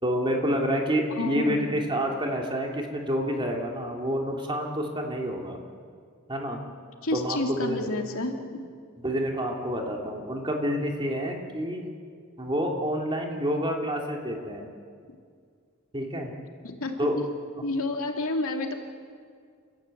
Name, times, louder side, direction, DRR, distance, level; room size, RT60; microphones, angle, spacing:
voice 1, 0.0-5.6 6.3-6.6 7.1-7.9 9.0-11.9 12.4-14.7 15.9-16.3 17.0-17.2, equal, 25° right, 1 dB, 2.8 m, -28 dB
voice 2, 1.2-1.7 7.0-8.7 16.6-17.0 17.6-18.7, left 2 dB, 80° left, 3 dB, 2.5 m, -29 dB
29.5 x 14.5 x 8.5 m, 2.1 s
head